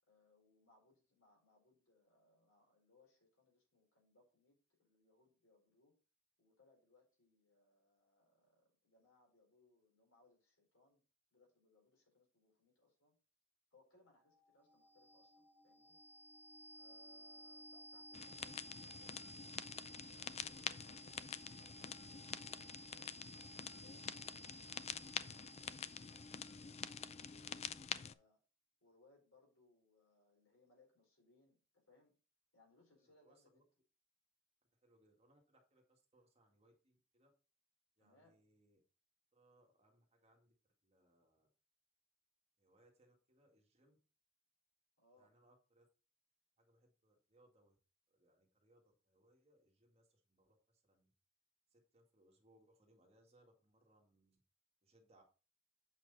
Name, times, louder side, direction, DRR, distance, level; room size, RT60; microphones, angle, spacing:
voice 1, 0.1-5.9 6.4-11.0 11.3-13.1 13.7-16.0 16.7-19.6 20.0-21.2 21.6-23.3 23.7-28.4 28.8-32.1 32.5-33.6 38.0-38.4 45.0-45.3, left 2 dB, 75° left, 0 dB, 4.6 m, -72 dB
sound 1, 14.2-28.0, equal, 10° left, 2.5 m, -57 dB
sound 2, 18.1-28.1, left 7 dB, 30° left, 0.3 m, -47 dB
voice 2, 33.0-33.6 34.8-37.3 38.0-38.8 39.3-41.5 42.6-44.0 45.1-45.9 46.6-47.8 48.1-51.1 51.7-54.4 54.8-55.2, right 1 dB, 30° right, 0 dB, 2.1 m, -72 dB
8.3 x 6.1 x 4.1 m, 0.34 s
head